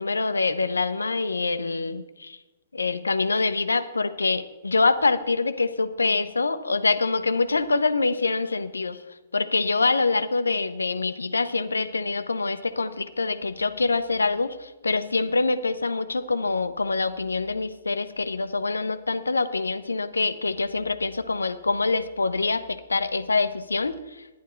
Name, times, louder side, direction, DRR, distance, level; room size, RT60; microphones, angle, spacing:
voice 1, 0.0-2.4 2.7-9.0 9.3-23.9, left 3 dB, 80° left, 11 dB, 0.7 m, -25 dB
11.0 x 10.0 x 4.4 m, 1.1 s
figure-of-eight pair, 115°, 0 cm